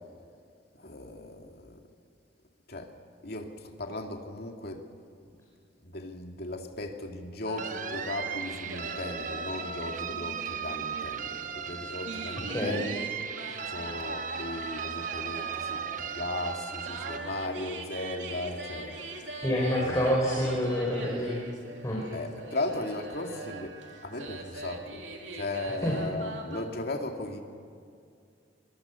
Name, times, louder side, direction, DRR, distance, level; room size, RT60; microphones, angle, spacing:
voice 1, 0.8-1.8 2.7-2.9 3.2-4.8 5.8-13.0 13.7-19.0 19.8-20.0 22.1-25.0 25.3-27.4, left 2 dB, 60° left, 3 dB, 2.5 m, -37 dB
sound 1, 7.5-26.6, right 2 dB, 90° right, 2.9 m, -42 dB
sound 2, 7.6-17.2, right 7 dB, 45° right, 1.1 m, -37 dB
voice 2, 12.5-12.8 19.4-21.4 21.8-22.0 25.8-26.0, equal, 20° left, -3 dB, 4.2 m, -27 dB
25.5 x 23.0 x 7.1 m, 2.3 s
head